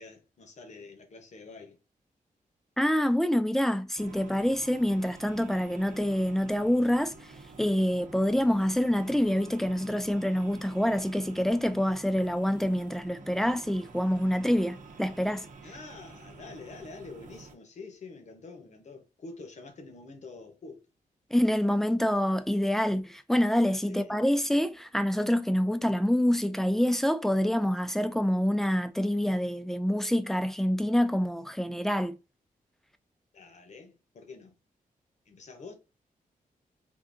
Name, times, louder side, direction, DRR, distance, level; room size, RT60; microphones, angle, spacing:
voice 1, 0.0-1.8 4.0-4.1 15.6-20.9 23.9-24.2 33.3-34.5 35.3-35.7, left 3 dB, 55° left, 0.9 m, -47 dB
voice 2, 2.8-7.3 7.6-15.5 21.3-32.1, equal, 5° left, 0.3 m, -26 dB
sound 1, 4.0-17.5, right 4 dB, 65° right, 0.8 m, -49 dB
3.7 x 2.6 x 2.5 m
wide cardioid pair, 125°, 14 cm